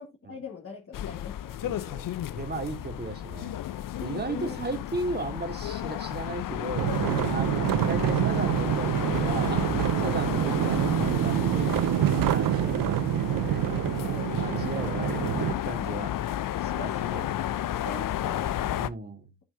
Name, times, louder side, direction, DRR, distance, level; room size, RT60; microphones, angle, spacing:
voice 1, 0.0-1.8 4.3-4.6 12.8-12.9 14.0-14.3 16.8-17.3 17.7-18.8, left 4 dB, 30° left, 2.6 m, -42 dB
sound 1, 0.9-18.9, left 12 dB, 45° left, 0.7 m, -32 dB
voice 2, 1.6-2.1 2.3-3.6 4.0-6.9 7.3-13.6 14.1-16.3 16.6-17.3 18.8-19.3, right 2 dB, 20° right, 2.9 m, -36 dB
sound 2, 6.8-15.5, right 12 dB, 50° right, 0.7 m, -26 dB
9.9 x 6.3 x 2.7 m
supercardioid pair, 65°, 44 cm